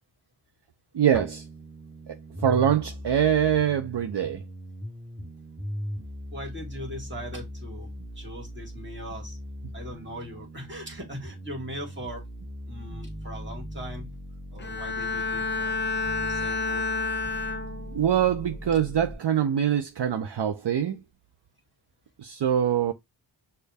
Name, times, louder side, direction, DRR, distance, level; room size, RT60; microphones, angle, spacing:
voice 1, 0.9-1.4 2.1-4.4 17.9-21.0 22.2-22.9, right 9 dB, 60° right, 0.6 m, -24 dB
sound 1, 1.1-19.1, equal, 5° right, 1.0 m, -39 dB
voice 2, 6.3-9.4 9.7-12.2 12.7-14.1 14.5-15.8 16.2-16.8, equal, 25° right, 1.9 m, -40 dB
Bowed string instrument, 14.6-18.2 18.6-19.0, left 4 dB, 25° left, 0.6 m, -30 dB
6.3 x 2.2 x 3.4 m
wide cardioid pair, 75°, 48 cm